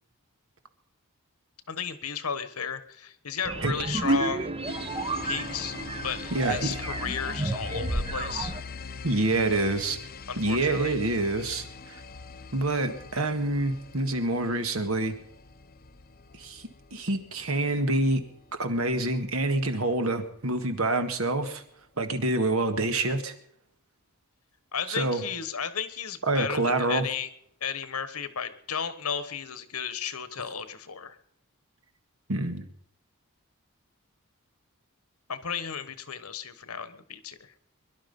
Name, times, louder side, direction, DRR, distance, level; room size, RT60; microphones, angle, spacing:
voice 1, 1.7-4.5 5.2-5.8 6.0-8.5 10.3-11.0 24.7-27.3 27.6-31.2 35.3-37.4, left 7 dB, 85° left, 13 dB, 1.3 m, -34 dB
sound 1, 3.4-8.6, right 2 dB, 25° right, 0.8 m, -31 dB
sound 2, 4.7-20.1, left 5 dB, 40° left, 0.8 m, -43 dB
voice 2, 6.3-6.8 9.0-10.0 10.4-12.0 12.5-15.2 16.4-18.2 18.5-21.6 22.0-23.3 24.9-25.2 26.3-27.1 32.3-32.7, right 2 dB, 70° right, 8 dB, 1.7 m, -27 dB
22.0 x 11.5 x 5.4 m, 0.70 s
head